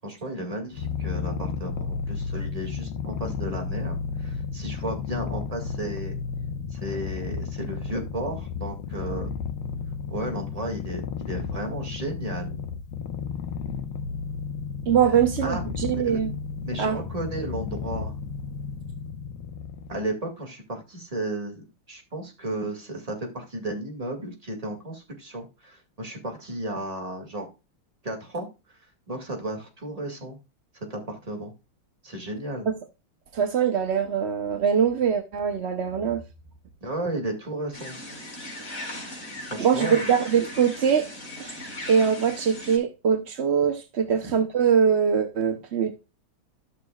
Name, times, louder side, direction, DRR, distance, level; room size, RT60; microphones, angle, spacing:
voice 1, 0.0-6.2 6.7-9.3 10.1-12.6 15.1-15.6 15.9-16.2 16.6-18.2 19.9-27.5 28.0-28.5 29.1-30.4 30.7-31.5 32.0-32.7 36.8-38.0 39.5-40.1 44.2-44.3, right 1 dB, 15° right, 2.1 m, -34 dB
Purr, 0.7-20.1, left 6 dB, 80° left, 1.8 m, -33 dB
voice 2, 14.9-16.3 16.8-17.0 32.7-32.8 33.3-36.2 39.6-41.1 41.4-45.9, right 7 dB, 70° right, 0.6 m, -23 dB
sound 1, 37.7-42.8, left 1 dB, 55° left, 4.6 m, -38 dB
13.0 x 6.7 x 2.3 m
omnidirectional pair, 2.3 m